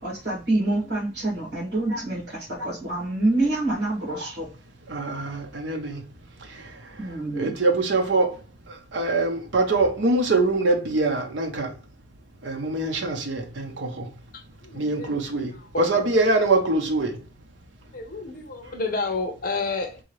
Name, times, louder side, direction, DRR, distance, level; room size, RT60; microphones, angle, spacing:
voice 1, 0.0-4.5 4.9-5.2 7.0-7.6, right 2 dB, 70° right, 2.1 m, -27 dB
voice 2, 4.9-6.1 6.4-11.8 12.4-14.1 14.7-17.2, right 2 dB, 85° right, 0.8 m, -24 dB
voice 3, 14.3-15.1 15.7-15.9 17.9-20.0, left 3 dB, 50° left, 0.8 m, -30 dB
3.8 x 2.8 x 3.0 m
head